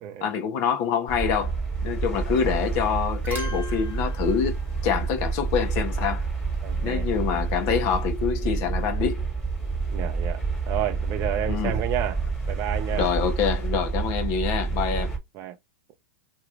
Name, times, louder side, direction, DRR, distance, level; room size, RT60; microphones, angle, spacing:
voice 1, 0.2-1.6 1.8-4.5 4.8-6.2 6.8-9.2 11.5-11.8 12.9-15.1, left 7 dB, 45° left, 1.2 m, -26 dB
sound 1, 1.1-15.2, right 4 dB, 5° left, 1.8 m, -28 dB
sound 2, 2.5-2.8 3.1-5.6 8.1-9.0, right 2 dB, 20° right, 1.1 m, -42 dB
voice 2, 6.6-7.1 9.9-10.4 10.7-13.1 14.9-15.1 15.3-15.6, right 11 dB, 35° right, 0.6 m, -31 dB
3.0 x 3.0 x 2.5 m
hypercardioid pair, 130°, 9 cm